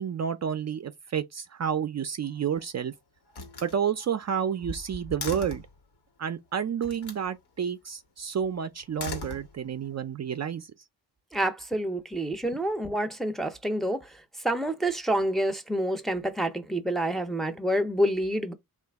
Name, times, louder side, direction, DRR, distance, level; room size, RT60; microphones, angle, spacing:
voice 1, 0.0-2.9 3.6-5.6 6.2-10.7, right 8 dB, 45° right, 0.5 m, -30 dB
Slam, 2.2-2.8 3.3-5.8 6.8-7.3 8.8-9.9, left 2 dB, 85° left, 1.3 m, -39 dB
voice 2, 11.3-18.5, right 1 dB, ahead, 0.6 m, -28 dB
3.8 x 2.5 x 3.4 m
wide cardioid pair, 105°, 38 cm